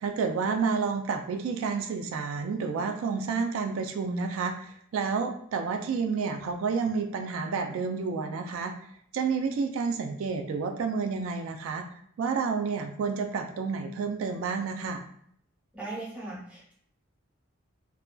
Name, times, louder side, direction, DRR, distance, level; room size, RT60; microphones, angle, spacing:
voice 1, 0.0-8.7 9.1-11.8 12.2-15.0, right 5 dB, 80° right, 6 dB, 0.3 m, -30 dB
voice 2, 15.7-16.7, right 2 dB, 5° right, -6 dB, 0.8 m, -38 dB
2.7 x 2.5 x 2.2 m, 0.66 s
head